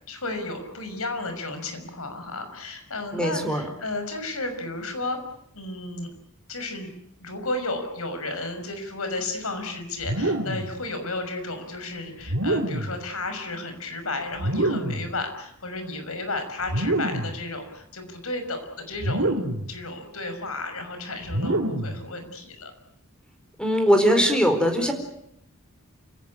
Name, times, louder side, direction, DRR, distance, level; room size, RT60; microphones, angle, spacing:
voice 1, 0.1-5.2 5.5-6.1 6.5-6.9 7.2-19.3 19.7-22.7, left 2 dB, 75° left, 7 dB, 6.0 m, -33 dB
voice 2, 3.1-3.6 23.6-24.9, equal, 5° left, 5 dB, 4.4 m, -20 dB
sound 1, 10.0-10.7 12.2-13.0 14.4-15.1 16.6-17.4 19.0-19.7 21.3-22.0, right 1 dB, 70° right, 3.4 m, -26 dB
29.0 x 17.5 x 9.9 m, 0.75 s
head